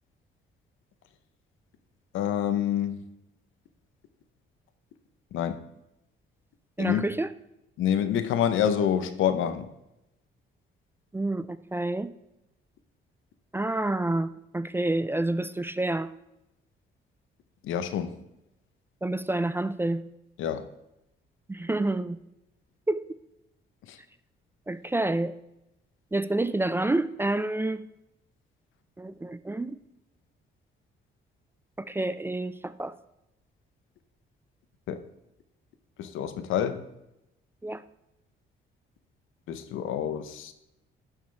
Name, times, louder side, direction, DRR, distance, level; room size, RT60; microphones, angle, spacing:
voice 1, 2.1-3.0 5.3-5.6 6.8-7.0 7.8-9.7 17.6-18.2 20.4-20.6 23.9-24.0 34.9-35.0 36.0-36.8 39.5-40.5, left 9 dB, 80° left, 0.8 m, -27 dB
voice 2, 6.8-7.3 11.1-12.1 13.5-16.1 19.0-20.0 21.5-22.2 22.9-23.0 24.7-25.3 26.1-27.9 29.0-29.8 31.8-33.0 37.6-37.8, right 2 dB, 10° right, 0.4 m, -28 dB
11.0 x 7.2 x 3.4 m
cardioid pair, 90°, 20 cm